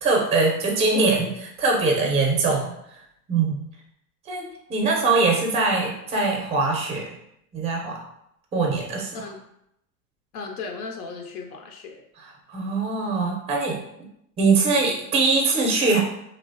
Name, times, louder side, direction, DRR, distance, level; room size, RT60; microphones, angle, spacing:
voice 1, 0.0-2.7 3.3-3.7 4.3-7.0 7.5-8.0 8.5-9.1 12.5-13.8 14.4-16.0, right 3 dB, 15° right, 0 dB, 0.5 m, -22 dB
voice 2, 10.3-12.0, left 4 dB, 75° left, 3 dB, 0.6 m, -36 dB
2.9 x 2.0 x 2.6 m, 0.78 s
hypercardioid pair, 105°, 45 cm